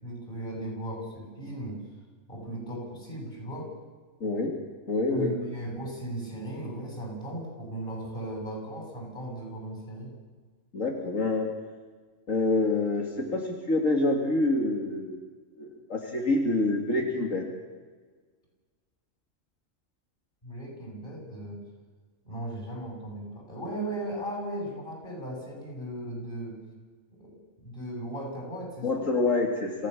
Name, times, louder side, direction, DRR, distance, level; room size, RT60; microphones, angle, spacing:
voice 1, 0.0-1.8 2.3-3.7 5.1-10.1 20.4-21.6 22.2-26.6 27.1-27.3 27.6-29.1, right 1 dB, 40° left, -2 dB, 8.2 m, -37 dB
voice 2, 4.2-4.5 4.9-5.3 10.7-11.5 12.3-15.2 15.6-17.4 28.8-29.9, left 2 dB, 75° left, 0 dB, 2.7 m, -26 dB
27.0 x 16.0 x 7.1 m, 1.5 s
omnidirectional pair, 1.3 m